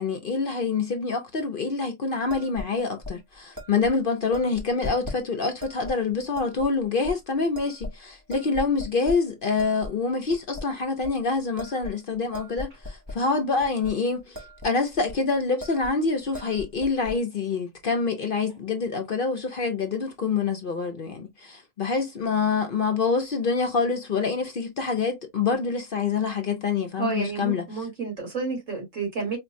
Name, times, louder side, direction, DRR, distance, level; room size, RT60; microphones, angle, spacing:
voice 1, 0.0-27.6, left 4 dB, 50° left, 0.7 m, -26 dB
sound 1, 2.3-2.7 3.0-3.2 3.6-3.9 4.3-5.2 5.6-5.9 6.4-6.7 7.0-7.1 7.5-8.0 8.3-9.2 9.6-9.9 10.3-10.7 11.0-11.2 11.6-13.2 13.6-13.9 14.2-14.7 14.9-15.2 15.6-15.9 16.2-17.2, left 2 dB, 20° right, 0.7 m, -38 dB
voice 2, 27.0-29.4, right 5 dB, 75° right, 2.5 m, -30 dB
4.3 x 2.2 x 2.5 m
omnidirectional pair, 1.3 m